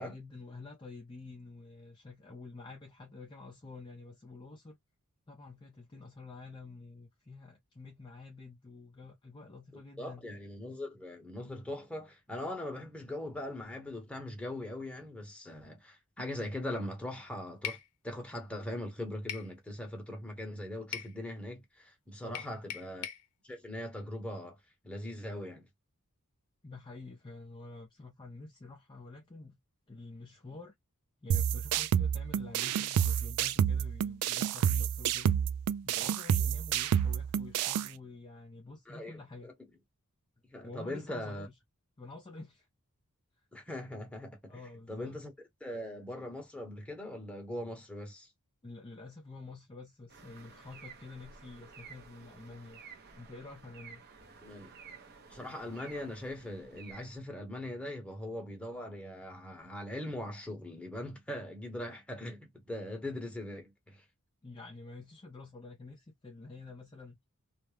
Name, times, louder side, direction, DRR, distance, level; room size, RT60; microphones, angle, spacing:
voice 1, 0.0-4.8 5.3-10.3 22.2-22.6 26.6-29.6 29.9-30.7 31.2-35.3 35.8-39.5 40.6-41.5 42.0-42.7 44.5-45.2 48.6-52.8 53.1-54.0 64.4-67.2, left 3 dB, 20° left, 0.4 m, -48 dB
voice 2, 10.0-17.8 18.0-23.1 23.4-24.6 24.8-25.7 38.9-39.5 40.5-41.5 43.5-44.6 44.9-45.3 45.6-48.3 54.4-54.7 55.3-64.0, left 1 dB, 5° left, 0.8 m, -41 dB
sound 1, 17.6-17.9 19.3-19.5 20.9-21.1 22.3-23.2, left 9 dB, 75° left, 0.5 m, -39 dB
sound 2, 31.3-37.9, right 9 dB, 80° right, 0.3 m, -29 dB
sound 3, 50.1-57.2, right 5 dB, 45° right, 0.6 m, -53 dB
2.3 x 2.1 x 3.1 m
head